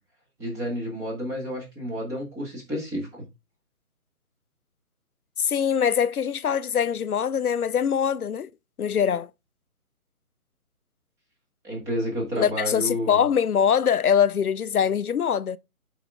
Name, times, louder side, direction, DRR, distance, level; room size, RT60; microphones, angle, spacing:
voice 1, 0.4-3.2 11.6-13.2, equal, 5° right, 1.6 m, -30 dB
voice 2, 5.4-8.5 8.8-9.3 12.4-15.6, left 8 dB, 90° left, 0.6 m, -23 dB
6.8 x 5.0 x 3.6 m
figure-of-eight pair, 150°, 43 cm